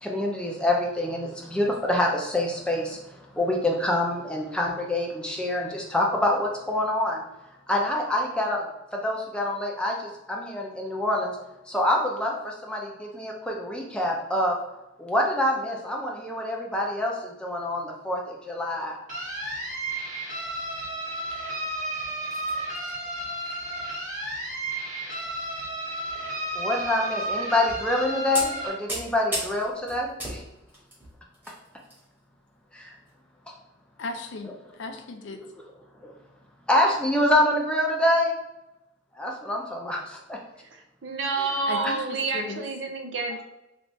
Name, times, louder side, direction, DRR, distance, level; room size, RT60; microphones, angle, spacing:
voice 1, 0.0-7.2 7.7-8.6 8.9-11.3 11.7-14.6 15.0-19.0 26.5-30.4 32.7-32.9 35.4-35.5 36.7-38.4 39.2-40.4 41.7-41.9, left 1 dB, 5° left, -1 dB, 0.6 m, -26 dB
sound 1, 19.1-28.7, right 1 dB, 45° right, 1.3 m, -33 dB
sound 2, 22.2-22.9 23.4-23.5 23.9-24.2 25.2-25.5 26.1-26.3 27.1-27.2 27.7-27.9 28.4-32.0 32.3-32.5 33.1-33.2, right 1 dB, 10° right, 1.2 m, -36 dB
voice 2, 34.0-35.4 41.7-42.6, left 3 dB, 70° left, 6 dB, 0.5 m, -36 dB
voice 3, 41.0-43.4, right 3 dB, 70° right, 4 dB, 0.6 m, -29 dB
3.4 x 2.5 x 3.9 m, 0.94 s
head